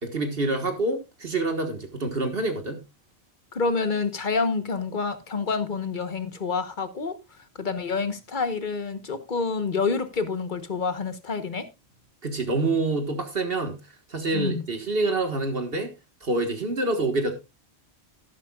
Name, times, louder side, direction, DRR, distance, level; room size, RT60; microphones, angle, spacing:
voice 1, 0.0-2.8 12.2-13.8 14.1-15.9 16.2-17.3, right 2 dB, 60° right, 1.7 m, -26 dB
voice 2, 3.5-7.2 7.6-11.7 14.3-14.6, left 4 dB, 50° left, 1.2 m, -28 dB
13.5 x 11.0 x 2.3 m
omnidirectional pair, 1.1 m